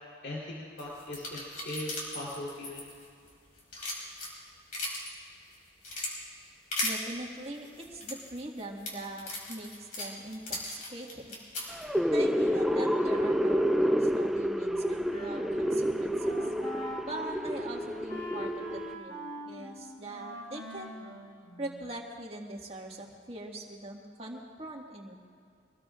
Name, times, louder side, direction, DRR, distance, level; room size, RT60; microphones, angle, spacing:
voice 1, 0.2-2.9, left 1 dB, 65° left, -4 dB, 3.6 m, -39 dB
sound 1, 0.8-3.3 3.6-5.1 5.5-6.1 6.7-6.9 7.6-11.8, left 2 dB, 45° left, 4.3 m, -37 dB
voice 2, 6.8-11.4 12.1-16.5 17.1-21.2 21.6-25.1, right 1 dB, 35° right, -1 dB, 1.9 m, -42 dB
sound 2, 11.7-18.9, equal, ahead, 0.3 m, -29 dB
Wind instrument woodwind instrument, 14.6-22.1, equal, 25° left, 4.0 m, -43 dB
25.0 x 19.5 x 2.5 m, 2.4 s
head